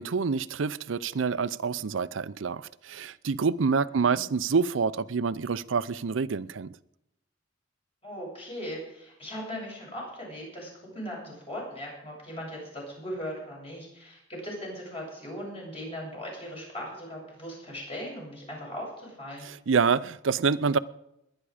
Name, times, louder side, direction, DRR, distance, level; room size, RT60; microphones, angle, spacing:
voice 1, 0.0-6.7 19.4-20.8, right 5 dB, 85° right, 0.5 m, -27 dB
voice 2, 3.9-4.3 8.0-19.5, equal, 30° left, 7.7 m, -39 dB
21.5 x 9.9 x 4.9 m
head